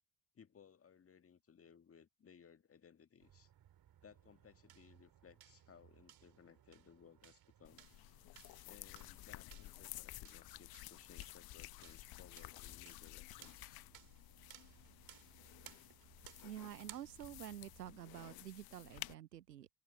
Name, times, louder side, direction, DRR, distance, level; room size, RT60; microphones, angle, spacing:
voice 1, 0.3-3.5 4.0-7.8 8.7-13.9, left 7 dB, 30° left, 1.8 m, -63 dB
sound 1, 3.2-18.0, right 11 dB, 45° right, 4.1 m, -63 dB
sound 2, 7.6-19.1, left 18 dB, 50° left, 1.0 m, -53 dB
voice 2, 16.4-19.7, right 11 dB, 85° right, 0.7 m, -49 dB
figure-of-eight pair, 55°, 48 cm